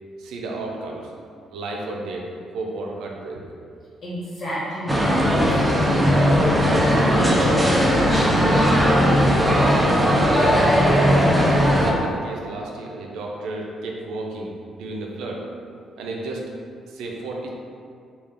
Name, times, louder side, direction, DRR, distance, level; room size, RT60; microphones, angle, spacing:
voice 1, 0.2-1.1 1.5-3.5 10.8-15.5 16.0-16.6 16.9-17.5, right 2 dB, 85° right, 0 dB, 0.5 m, -33 dB
voice 2, 4.0-9.4, equal, 45° left, -9 dB, 1.3 m, -30 dB
sound 1, 4.9-11.9, equal, 10° right, 0.5 m, -18 dB
3.2 x 2.4 x 3.6 m, 2.3 s
cardioid pair, 90°, 0 cm